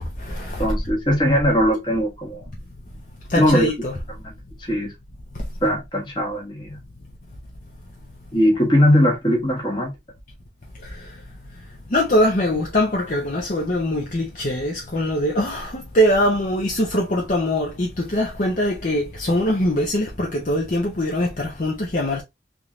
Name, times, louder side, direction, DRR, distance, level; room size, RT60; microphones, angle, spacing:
voice 1, 0.0-0.7 3.3-3.9 5.3-5.4 10.8-11.2 11.9-22.2, left 1 dB, 45° left, 0.7 m, -22 dB
voice 2, 0.6-2.4 3.3-3.7 4.2-4.3 4.6-4.9 5.6-6.8 8.3-9.9, equal, 25° left, 1.2 m, -20 dB
3.7 x 2.6 x 2.9 m
head